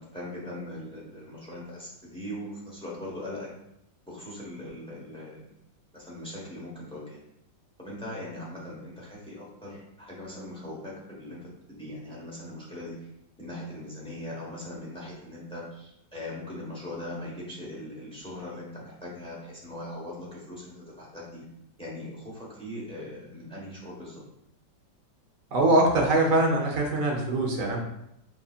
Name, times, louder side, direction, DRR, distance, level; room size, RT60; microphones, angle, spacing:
voice 1, 0.0-3.5 4.0-5.5 5.9-7.2 7.8-11.5 11.8-13.0 13.4-21.4 21.8-24.2, left 1 dB, 5° left, -6 dB, 0.7 m, -40 dB
voice 2, 25.5-27.8, right 1 dB, 55° right, -1 dB, 1.1 m, -23 dB
6.6 x 2.7 x 2.4 m, 0.82 s
omnidirectional pair, 2.0 m